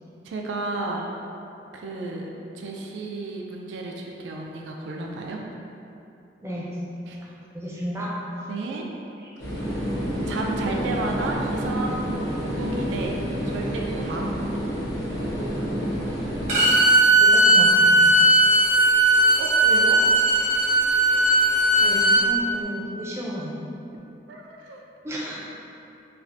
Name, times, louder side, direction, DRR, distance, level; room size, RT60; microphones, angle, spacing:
voice 1, 0.2-1.0 1.7-2.2 2.5-5.4 7.1-7.2 8.5-8.9 9.6-9.7 10.2-13.2 13.4-14.5 19.4-20.0 24.3-24.8, right 2 dB, 90° right, 0 dB, 0.3 m, -32 dB
voice 2, 6.4-6.7 7.5-8.2 8.7-8.8 9.2-9.3 9.7-9.9 17.1-18.1 21.8-23.6 25.0-25.4, equal, 15° right, -5 dB, 0.4 m, -32 dB
sound 1, 9.4-16.6, equal, 70° left, 1.2 m, -28 dB
Bowed string instrument, 16.5-22.2, right 1 dB, 70° right, 0.9 m, -17 dB
3.2 x 2.4 x 2.5 m, 2.8 s
head